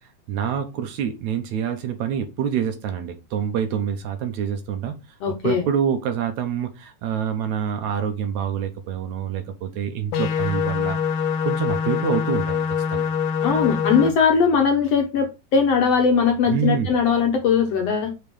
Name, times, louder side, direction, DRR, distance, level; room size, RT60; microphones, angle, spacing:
voice 1, 0.3-4.9 5.4-13.1 16.5-17.0, right 8 dB, 70° right, 2.0 m, -26 dB
voice 2, 5.2-5.6 13.4-18.1, left 6 dB, 65° left, 1.8 m, -20 dB
sound 1, 10.1-14.1, left 7 dB, 80° left, 2.5 m, -24 dB
6.9 x 3.6 x 5.2 m
omnidirectional pair, 3.8 m